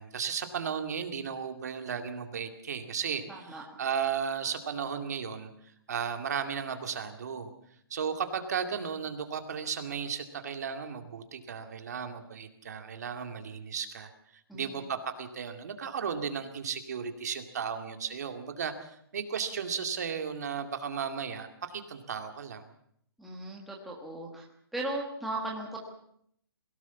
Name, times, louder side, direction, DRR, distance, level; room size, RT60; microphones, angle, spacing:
voice 1, 0.0-3.2 3.5-5.5 5.9-7.5 7.9-14.1 14.5-22.6, right 7 dB, 40° right, 6 dB, 2.3 m, -35 dB
voice 2, 3.3-3.6 14.5-14.8 23.2-24.5 24.7-25.8, right 2 dB, ahead, -3 dB, 1.4 m, -37 dB
22.0 x 17.5 x 7.1 m, 0.69 s
hypercardioid pair, 180°, 13 cm